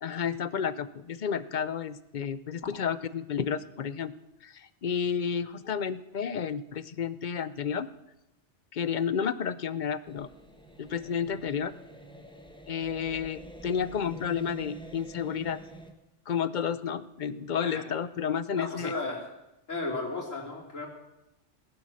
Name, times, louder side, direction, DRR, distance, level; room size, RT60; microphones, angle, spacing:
voice 1, 0.0-4.1 4.4-7.9 8.7-10.3 10.8-11.7 12.7-15.6 16.3-18.9, left 7 dB, 45° left, 15 dB, 0.7 m, -31 dB
sound 1, 10.1-15.9, equal, 5° left, 1.3 m, -47 dB
voice 2, 18.6-19.3 19.7-20.9, left 3 dB, 90° left, -3 dB, 4.2 m, -34 dB
19.0 x 11.0 x 6.4 m, 0.93 s
omnidirectional pair, 1.3 m